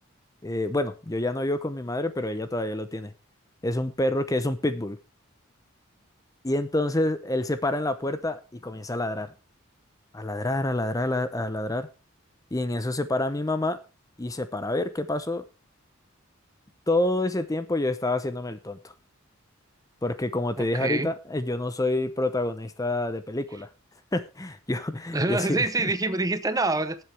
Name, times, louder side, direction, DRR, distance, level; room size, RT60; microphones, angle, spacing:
voice 1, 0.4-3.1 3.6-5.0 6.4-9.3 10.1-11.9 12.5-13.8 14.2-15.4 16.9-18.9 20.0-23.7 24.1-25.9, left 1 dB, 15° left, 0.7 m, -28 dB
voice 2, 20.6-21.1 25.1-27.0, right 2 dB, 15° right, 0.8 m, -26 dB
19.5 x 7.8 x 3.4 m
head